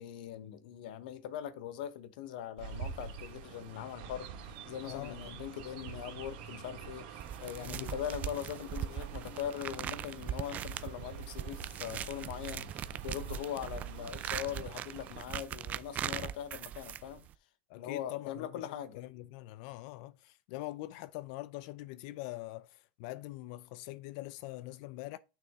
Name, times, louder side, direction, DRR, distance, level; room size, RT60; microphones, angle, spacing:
voice 1, 0.0-17.3 17.7-19.0, left 10 dB, 85° left, 1.0 m, -41 dB
Chirp tweet, 2.6-15.2, right 6 dB, 80° right, 2.0 m, -46 dB
voice 2, 4.8-5.3 7.6-7.9 17.7-25.2, left 17 dB, 70° left, 0.5 m, -43 dB
sound 1, 7.2-17.3, right 10 dB, 35° right, 0.4 m, -41 dB
6.6 x 5.9 x 3.6 m
supercardioid pair, 140°, 5 cm